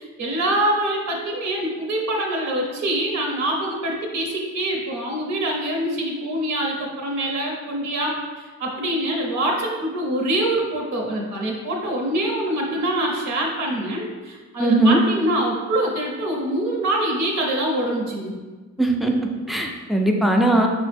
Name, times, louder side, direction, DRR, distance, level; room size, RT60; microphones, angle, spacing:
voice 1, 0.0-18.3, right 1 dB, 70° right, 0 dB, 0.8 m, -25 dB
voice 2, 14.6-15.0 18.8-19.1 19.5-20.7, right 1 dB, ahead, 2 dB, 0.4 m, -19 dB
5.2 x 2.1 x 3.3 m, 1.3 s
cardioid pair, 90°, 30 cm